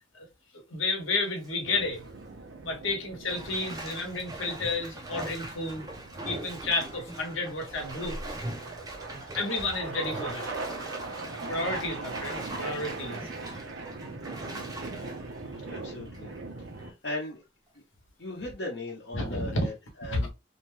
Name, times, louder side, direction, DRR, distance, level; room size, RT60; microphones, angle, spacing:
voice 1, 0.7-2.0 2.6-5.9 6.2-8.2 9.1-10.5 11.2-13.2 19.1-19.7 20.1-20.3, left 2 dB, 80° left, 1.0 m, -31 dB
Bathtub (filling or washing), 1.1-1.5 1.9-2.1 3.3-16.4 16.8-16.9, right 2 dB, 20° right, 0.4 m, -41 dB
sound 1, 1.6-16.9, right 3 dB, 85° right, 0.7 m, -41 dB
voice 2, 15.7-16.3 16.6-17.4 18.2-19.7 20.0-20.3, left 1 dB, 55° left, 0.7 m, -38 dB
2.7 x 2.2 x 3.1 m
head